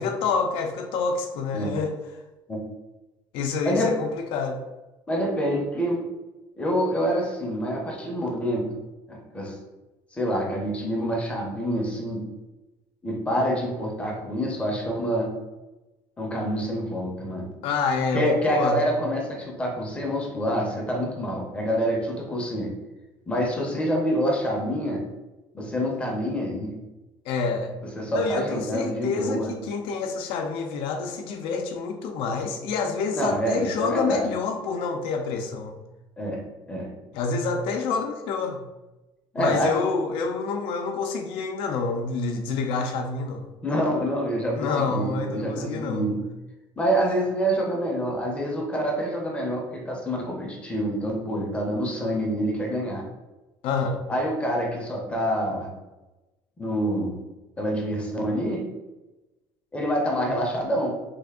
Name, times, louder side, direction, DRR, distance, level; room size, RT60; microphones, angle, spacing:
voice 1, 0.0-1.9 3.3-4.6 17.6-18.9 27.2-27.7 28.1-35.8 37.1-38.7 39.4-43.4 44.6-46.1 53.6-54.0, left 4 dB, 80° left, 4 dB, 0.6 m, -27 dB
voice 2, 5.1-6.1 6.6-8.7 9.1-9.6 10.1-12.2 13.0-15.3 16.2-17.5 18.1-22.7 23.3-25.0 25.5-26.7 28.0-29.5 33.1-34.3 36.2-36.4 36.7-36.9 39.3-39.7 43.6-46.2 46.8-53.0 54.1-55.7 56.6-57.2 57.6-58.6 59.7-60.9, equal, 15° left, -1 dB, 0.6 m, -26 dB
3.3 x 2.5 x 3.5 m, 1.1 s
cardioid pair, 165°, 9 cm